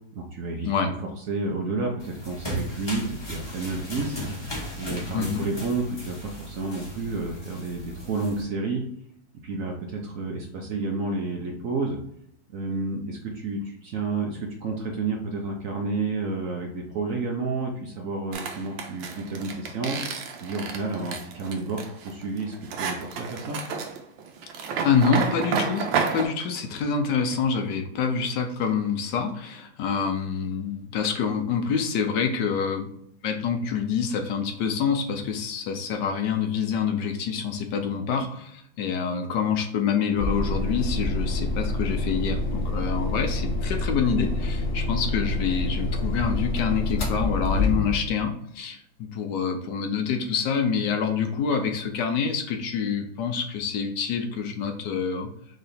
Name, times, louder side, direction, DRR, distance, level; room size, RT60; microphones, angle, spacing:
voice 1, 0.1-8.8 9.4-12.0 12.5-20.0 20.4-23.6, right 3 dB, 60° right, 1 dB, 0.9 m, -30 dB
sound 1, 2.0-8.4, equal, 20° left, 0.8 m, -36 dB
voice 2, 5.1-5.5 24.8-32.9 33.2-55.3, left 6 dB, 75° left, 5 dB, 1.2 m, -26 dB
sound 2, 18.3-26.3, right 5 dB, 90° right, 1.4 m, -30 dB
sound 3, 40.2-48.2, left 2 dB, 50° left, 1.0 m, -27 dB
3.8 x 3.3 x 4.0 m, 0.71 s
omnidirectional pair, 2.0 m